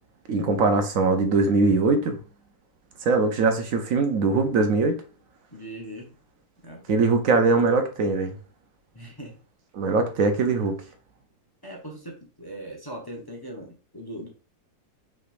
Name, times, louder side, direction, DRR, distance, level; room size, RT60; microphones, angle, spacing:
voice 1, 0.3-2.2 3.1-5.0 6.9-8.3 9.7-10.8, right 3 dB, 65° right, 1.1 m, -21 dB
voice 2, 5.5-6.1 6.6-7.0 8.9-9.4 11.6-14.3, right 1 dB, 20° left, 0.8 m, -40 dB
5.9 x 3.3 x 2.5 m
omnidirectional pair, 1.7 m